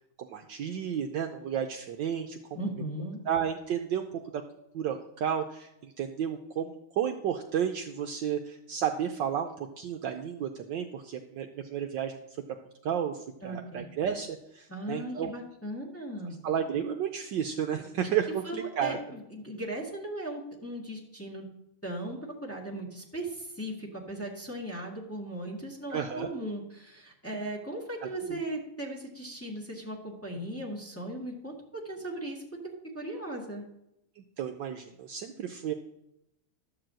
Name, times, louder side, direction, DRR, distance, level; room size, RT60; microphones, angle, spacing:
voice 1, 0.2-2.6 3.3-4.4 4.7-12.2 12.8-15.3 16.4-19.0 25.9-26.3 28.0-28.4 34.2-35.7, right 8 dB, 70° right, 5 dB, 1.2 m, -32 dB
voice 2, 2.5-3.2 13.4-13.8 14.7-16.3 18.4-21.5 21.8-32.4 32.9-33.6, right 1 dB, 5° left, -2 dB, 1.6 m, -37 dB
12.0 x 4.9 x 7.5 m, 0.83 s
omnidirectional pair, 2.4 m